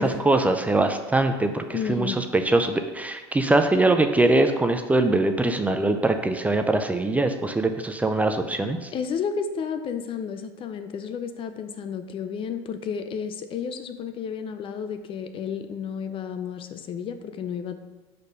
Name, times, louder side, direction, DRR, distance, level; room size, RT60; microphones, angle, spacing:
voice 1, 0.3-8.9, right 2 dB, 10° right, 7 dB, 0.4 m, -22 dB
voice 2, 1.7-2.2 8.9-17.8, left 6 dB, 40° left, 9 dB, 0.6 m, -32 dB
5.0 x 4.2 x 5.4 m, 1.2 s
supercardioid pair, 100°, 13 cm